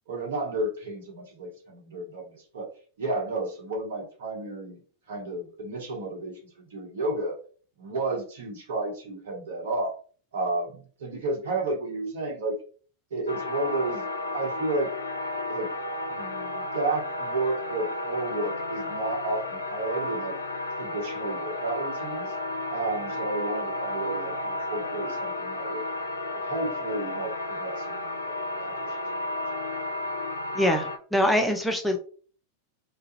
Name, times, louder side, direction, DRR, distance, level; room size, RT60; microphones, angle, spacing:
voice 1, 0.1-2.7 3.0-4.8 5.1-7.4 7.8-9.9 10.3-12.6 13.1-14.1 14.3-14.9 15.5-15.7 16.1-20.3 20.7-22.3 22.7-25.9 26.3-29.1 29.6-29.7, right 2 dB, 60° right, 0 dB, 0.9 m, -32 dB
sound 1, 13.3-31.0, left 2 dB, 80° left, 0.3 m, -33 dB
voice 2, 30.5-32.0, equal, 5° left, 3 dB, 0.3 m, -24 dB
2.3 x 2.0 x 2.8 m, 0.41 s
figure-of-eight pair, 90°, 0 cm